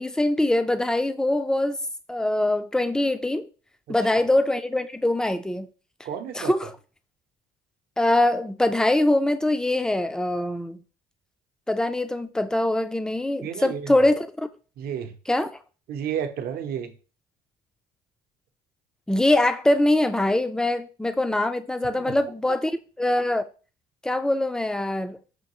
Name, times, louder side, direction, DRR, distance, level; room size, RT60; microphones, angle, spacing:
voice 1, 0.0-1.8 2.1-3.5 3.9-5.7 6.3-6.7 8.0-10.8 11.7-14.5 15.3-15.5 19.1-22.7 23.0-23.4 24.0-25.2, left 1 dB, 5° left, 0.3 m, -23 dB
voice 2, 6.0-6.5 13.4-13.9 14.8-15.1 15.9-16.9 22.1-22.2, right 8 dB, 65° right, 0.7 m, -31 dB
5.6 x 2.6 x 2.9 m
cardioid pair, 110°, 17 cm